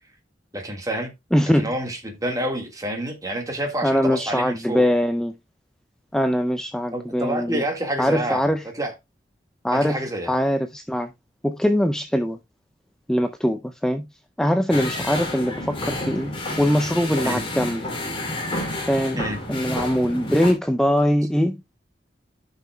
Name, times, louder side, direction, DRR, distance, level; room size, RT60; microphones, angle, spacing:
voice 1, 0.5-1.1 1.5-4.9 6.9-8.4 8.7-8.9 9.7-10.3 17.2-17.4 19.2-19.4, right 1 dB, 20° right, 1.7 m, -28 dB
voice 2, 1.3-1.7 3.8-5.3 6.1-7.6 8.0-8.6 9.6-10.0 10.3-11.1 11.4-12.4 13.1-14.1 14.4-17.8 18.9-21.6, equal, 5° left, 0.4 m, -22 dB
sound 1, 14.7-20.5, left 1 dB, 30° left, 2.7 m, -30 dB
14.0 x 5.6 x 2.2 m
head